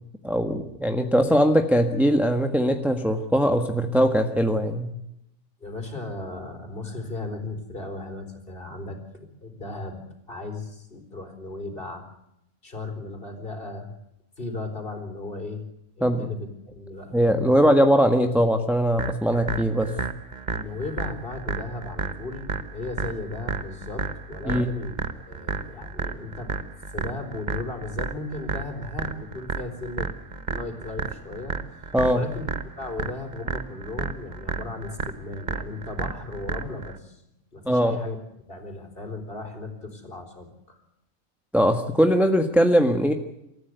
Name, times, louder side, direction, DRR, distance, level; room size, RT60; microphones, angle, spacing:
voice 1, 0.2-4.9 16.0-16.2 17.1-19.9 24.5-24.7 31.9-32.2 37.6-38.0 41.5-43.1, equal, ahead, 5 dB, 1.4 m, -21 dB
voice 2, 5.6-12.1 12.6-13.9 14.4-15.7 16.0-17.2 17.5-17.6 20.5-26.6 26.9-30.1 30.5-32.5 32.8-37.2 37.5-38.2 38.5-40.8, left 2 dB, 40° left, 5 dB, 4.4 m, -36 dB
sound 1, 19.0-37.0, right 4 dB, 35° right, 1.2 m, -32 dB
27.5 x 14.5 x 8.1 m, 0.84 s
omnidirectional pair, 1.5 m